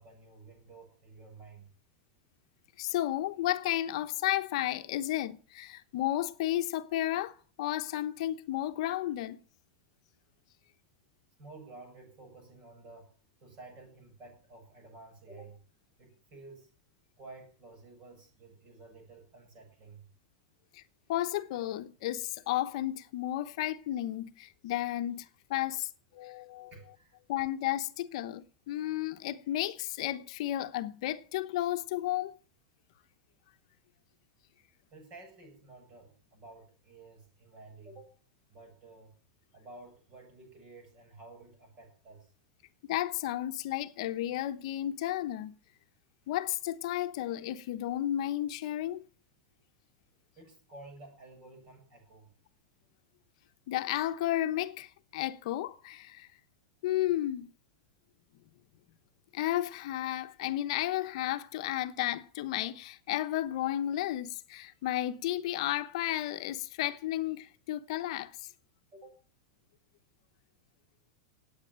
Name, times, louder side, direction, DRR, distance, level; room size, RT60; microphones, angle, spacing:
voice 1, 0.0-1.7 11.4-13.1 13.4-15.6 16.0-16.7 17.2-20.1 26.7-27.2 34.9-38.2 38.5-39.2 39.5-42.3 50.4-52.3 68.9-69.1, right 3 dB, 30° right, 8.0 m, -52 dB
voice 2, 2.8-9.4 20.7-20.8 21.1-26.7 27.3-32.4 42.8-45.5 46.3-49.1 53.7-56.3 56.8-57.5 59.3-68.5, left 13 dB, 60° left, 1.0 m, -33 dB
18.5 x 8.9 x 7.5 m
supercardioid pair, 160°, 4 cm